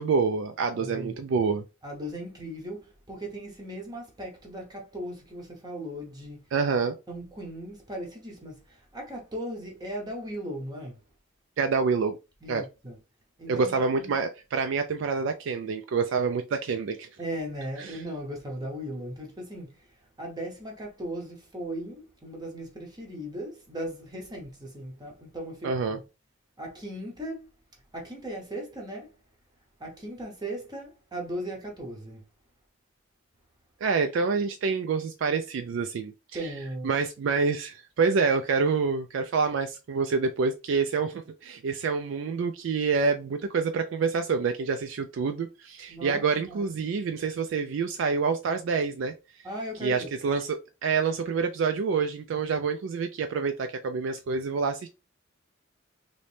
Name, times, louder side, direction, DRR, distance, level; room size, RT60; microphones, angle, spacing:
voice 1, 0.0-1.6 6.5-7.0 11.6-12.2 12.5-12.7 13.5-17.1 17.8-18.0 25.6-26.0 33.8-36.5 36.8-49.2 49.8-54.9, right 5 dB, 65° right, 0.3 m, -27 dB
voice 2, 0.8-1.2 1.8-6.5 7.1-11.0 12.4-13.0 13.4-14.2 17.2-26.0 26.6-27.5 27.9-29.1 29.8-32.2 36.3-36.9 45.9-46.7 49.4-50.1, right 1 dB, 20° right, 0.7 m, -37 dB
3.0 x 2.7 x 3.3 m
head